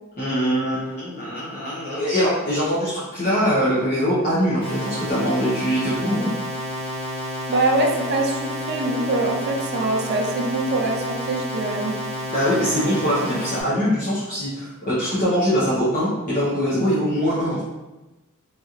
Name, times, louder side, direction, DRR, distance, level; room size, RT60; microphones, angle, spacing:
voice 1, 0.2-6.3 12.3-17.6, equal, 40° left, -11 dB, 0.8 m, -22 dB
sound 1, 4.6-13.6, equal, 5° left, 1.1 m, -30 dB
voice 2, 7.5-12.0, right 2 dB, 50° right, 1 dB, 0.5 m, -23 dB
3.1 x 2.7 x 2.4 m, 1.1 s
head